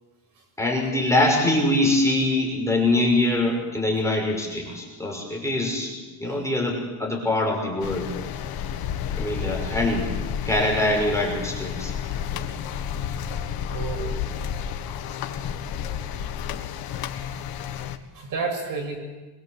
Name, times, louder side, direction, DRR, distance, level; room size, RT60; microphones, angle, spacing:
voice 1, 0.6-8.1 9.2-10.1 10.5-11.9, left 1 dB, 5° left, 0 dB, 5.9 m, -23 dB
sound 1, 7.8-18.0, left 8 dB, 55° left, 1.9 m, -31 dB
voice 2, 13.7-14.5 16.1-16.3 18.1-19.0, right 4 dB, 45° right, 2 dB, 7.6 m, -32 dB
25.0 x 23.5 x 8.2 m, 1.2 s
cardioid pair, 140°, 43 cm